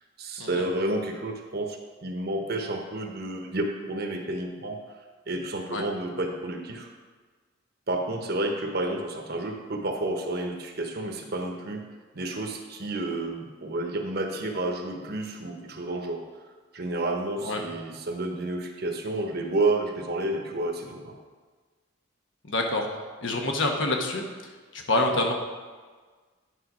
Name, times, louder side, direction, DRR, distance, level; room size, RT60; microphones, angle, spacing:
voice 1, 0.2-4.8 5.3-6.9 7.9-11.9 12.1-16.2 16.7-21.1, right 2 dB, 50° right, 3 dB, 1.0 m, -30 dB
voice 2, 22.4-22.9 23.2-24.2 24.7-25.3, left 2 dB, 65° left, 2 dB, 1.1 m, -26 dB
10.0 x 5.3 x 5.0 m, 1.4 s
head